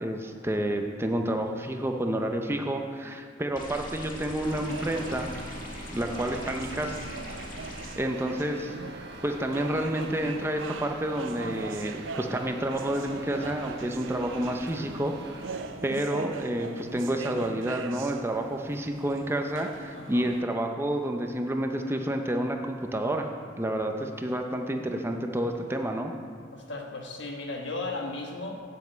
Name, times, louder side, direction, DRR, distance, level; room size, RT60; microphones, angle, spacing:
voice 1, 0.0-5.3 5.9-6.9 8.0-15.4 15.8-23.3 23.6-26.1, right 1 dB, 15° right, 4 dB, 0.6 m, -29 dB
sound 1, 3.6-8.0, left 1 dB, 45° left, 1.5 m, -41 dB
sound 2, 4.4-15.8, right 2 dB, 60° right, 1.1 m, -44 dB
sound 3, 4.7-20.4, right 4 dB, 90° right, 0.5 m, -41 dB
voice 2, 19.9-20.3 26.5-28.6, left 2 dB, 70° left, 2 dB, 1.4 m, -36 dB
7.6 x 7.4 x 8.0 m, 2.1 s
head